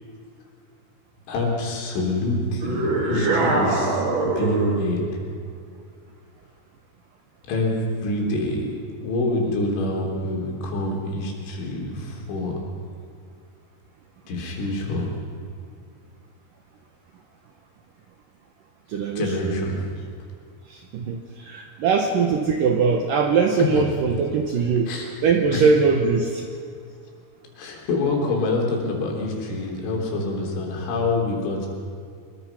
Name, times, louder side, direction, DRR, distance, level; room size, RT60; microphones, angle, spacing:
voice 1, 1.3-5.1 7.5-7.7 8.0-12.6 14.3-15.1 19.2-19.8 23.6-23.9 24.9-25.1 25.5-25.7 26.2-26.3 27.6-31.7, left 2 dB, 80° left, -1 dB, 6.0 m, -26 dB
sound 1, 2.6-4.9, right 2 dB, 45° right, 1.6 m, -23 dB
voice 2, 18.9-19.5 20.7-24.9 25.2-26.4, right 5 dB, 75° right, 4 dB, 2.1 m, -21 dB
24.5 x 22.0 x 6.0 m, 2.3 s
omnidirectional pair, 5.4 m